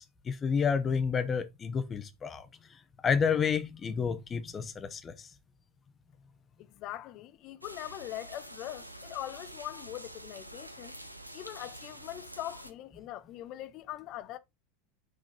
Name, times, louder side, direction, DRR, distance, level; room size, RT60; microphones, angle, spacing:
voice 1, 0.0-2.4 3.0-5.3, left 6 dB, 25° left, 1.1 m, -30 dB
voice 2, 6.8-10.9 11.3-14.4, left 14 dB, 45° left, 0.7 m, -42 dB
sound 1, 7.6-12.7, right 1 dB, 90° right, 0.6 m, -47 dB
6.3 x 3.8 x 4.5 m
figure-of-eight pair, 80°, 0 cm